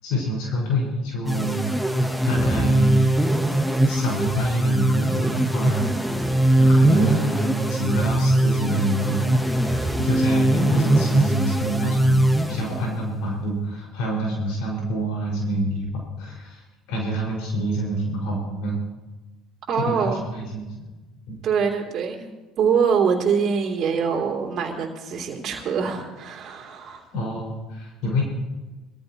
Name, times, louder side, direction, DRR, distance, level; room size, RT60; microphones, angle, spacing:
voice 1, 0.0-1.7 2.2-3.2 3.9-6.3 6.6-18.8 19.8-20.7 21.3-21.4 27.1-28.2, right 1 dB, 70° left, -2 dB, 5.6 m, -26 dB
sound 1, 1.3-13.0, right 1 dB, 5° left, 1.7 m, -21 dB
voice 2, 19.7-20.3 21.4-22.3 22.6-27.0, right 6 dB, 50° right, -1 dB, 3.0 m, -24 dB
24.0 x 14.0 x 3.1 m, 1.2 s
hypercardioid pair, 75°, 0 cm